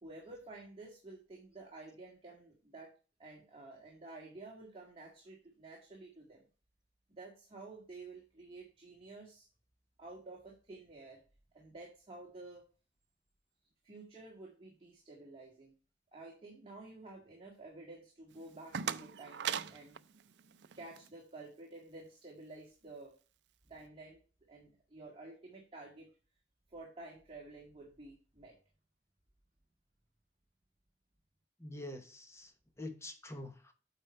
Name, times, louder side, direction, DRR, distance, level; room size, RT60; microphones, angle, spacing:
voice 1, 0.0-2.9 3.2-6.4 7.2-9.5 10.0-11.2 11.5-12.6 13.8-15.7 16.1-20.0 20.8-23.1 23.7-24.2 24.5-26.1 26.7-28.5, right 2 dB, 30° right, 1.9 m, -51 dB
sound 1, 18.3-21.1, right 8 dB, 70° right, 0.4 m, -40 dB
voice 2, 31.6-32.5 32.8-33.7, left 1 dB, 15° left, 1.0 m, -45 dB
8.7 x 4.4 x 4.3 m
head